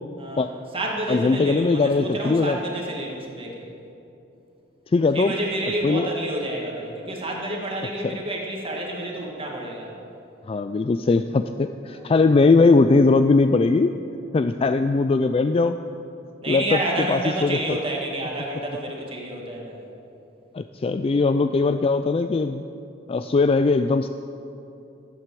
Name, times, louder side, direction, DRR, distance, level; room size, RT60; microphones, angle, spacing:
voice 1, 0.2-3.6 5.1-9.9 11.9-12.3 16.4-19.9, right 1 dB, 30° right, -1 dB, 1.9 m, -29 dB
voice 2, 1.1-2.6 4.9-5.3 5.8-6.1 8.0-8.2 10.5-13.9 14.3-15.8 16.5-16.8 17.1-17.6 20.5-22.6 23.1-24.1, left 3 dB, 30° left, 10 dB, 0.3 m, -20 dB
15.0 x 8.3 x 7.6 m, 2.8 s
head